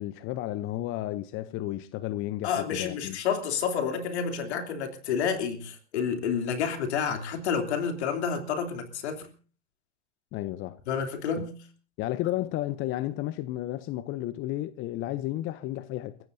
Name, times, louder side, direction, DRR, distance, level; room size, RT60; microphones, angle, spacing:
voice 1, 0.0-3.2 10.3-10.8 11.4-11.5 12.0-16.2, left 15 dB, 35° left, 0.7 m, -32 dB
voice 2, 2.4-9.3 10.9-11.5, left 7 dB, 70° left, 3.1 m, -29 dB
29.5 x 15.5 x 2.7 m
hypercardioid pair, 105°, 34 cm